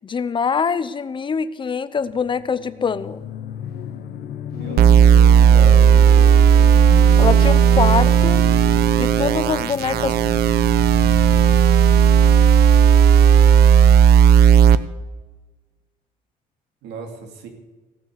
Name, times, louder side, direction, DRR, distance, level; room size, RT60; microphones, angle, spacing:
voice 1, 0.0-3.2 7.2-8.4 9.0-10.1, left 6 dB, 30° left, 15 dB, 0.7 m, -24 dB
sound 1, 2.1-12.0, left 10 dB, 65° left, 0.9 m, -34 dB
voice 2, 4.5-6.4 16.8-17.5, right 4 dB, 90° right, 5 dB, 2.3 m, -37 dB
sound 2, 4.8-14.8, right 8 dB, 70° right, 0.7 m, -13 dB
17.0 x 6.1 x 8.0 m, 1.3 s
cardioid pair, 110°, 17 cm